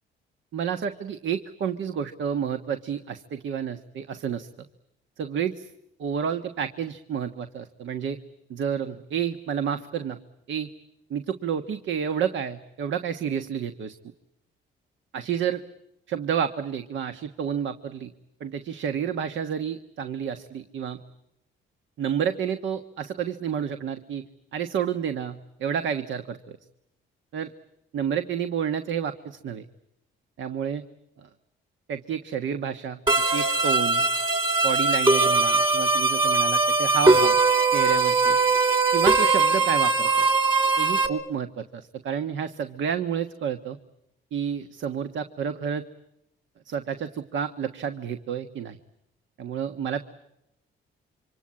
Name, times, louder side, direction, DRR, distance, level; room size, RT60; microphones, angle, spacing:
voice 1, 0.5-4.5 5.2-5.7 6.0-8.2 8.5-10.2 10.5-10.7 11.1-13.9 15.1-15.6 16.1-18.1 18.4-21.0 22.0-24.2 24.5-26.6 27.3-27.5 27.9-29.6 30.4-30.8 31.2-31.3 31.9-33.0 33.3-34.1 34.6-37.4 37.7-38.4 38.9-40.2 40.8-43.8 44.3-45.8 46.6-48.8 49.4-50.0, right 8 dB, 70° right, 8 dB, 1.4 m, -30 dB
sound 1, 33.1-41.1, right 3 dB, 25° right, 3.3 m, -21 dB
27.5 x 25.5 x 8.6 m, 0.85 s
cardioid pair, 90°, 20 cm